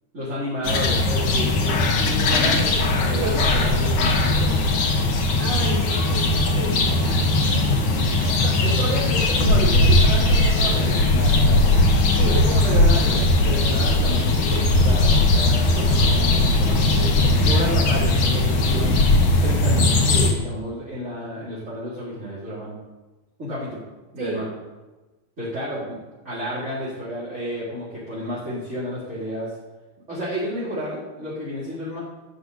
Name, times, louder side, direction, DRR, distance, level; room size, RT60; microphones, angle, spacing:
voice 1, 0.1-2.7 3.0-4.6 8.6-11.8 12.2-17.1 17.4-22.8 23.4-23.8 24.1-24.5 25.4-26.0 26.2-29.5 30.1-32.0, equal, 20° right, -10 dB, 4.5 m, -31 dB
sound 1, 0.6-20.3, left 2 dB, 80° left, 3.6 m, -19 dB
voice 2, 5.4-8.6 12.2-12.4 24.2-24.4, right 2 dB, 55° right, -7 dB, 5.8 m, -33 dB
15.5 x 6.8 x 8.7 m, 1.1 s
omnidirectional pair, 3.5 m